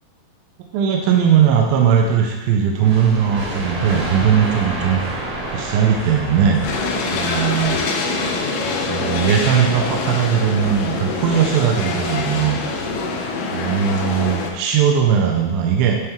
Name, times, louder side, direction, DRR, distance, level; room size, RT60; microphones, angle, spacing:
voice 1, 0.7-5.1 5.5-6.6 7.1-7.8 8.9-12.7 13.5-16.0, right 8 dB, 80° right, 1 dB, 2.2 m, -18 dB
sound 1, 2.8-8.4, right 1 dB, 50° right, 1.8 m, -29 dB
sound 2, 3.4-13.4, right 4 dB, 65° left, 1.8 m, -42 dB
sound 3, 6.6-14.5, left 3 dB, 85° left, 2.6 m, -24 dB
9.5 x 3.5 x 3.0 m, 1.2 s
omnidirectional pair, 4.3 m